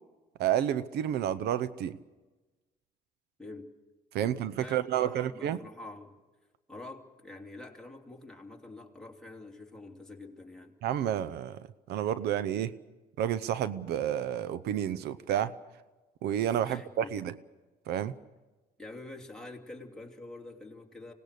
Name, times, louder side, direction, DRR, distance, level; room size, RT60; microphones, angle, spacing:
voice 1, 0.4-2.0 4.1-5.6 10.8-12.7 13.2-15.5 16.2-17.3 17.9-18.1, right 10 dB, 75° right, 15 dB, 0.7 m, -30 dB
voice 2, 3.4-3.7 4.2-6.2 6.7-10.7 16.6-17.2 18.8-21.1, left 2 dB, 5° left, 0 dB, 2.9 m, -46 dB
25.0 x 18.5 x 6.8 m, 1.2 s
cardioid pair, 110°, 17 cm